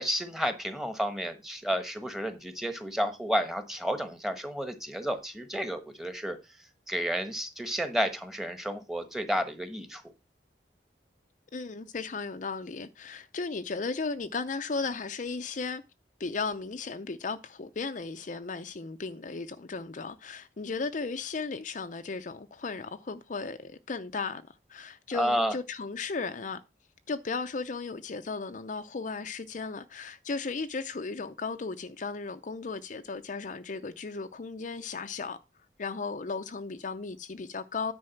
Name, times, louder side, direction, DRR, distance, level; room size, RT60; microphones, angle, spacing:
voice 1, 0.0-6.4 6.9-10.0 25.1-25.6, equal, ahead, 1.1 m, -31 dB
voice 2, 11.5-15.8 16.2-26.6 27.1-35.4 35.8-37.9, left 4 dB, 45° left, 0.5 m, -35 dB
9.7 x 4.7 x 5.8 m
head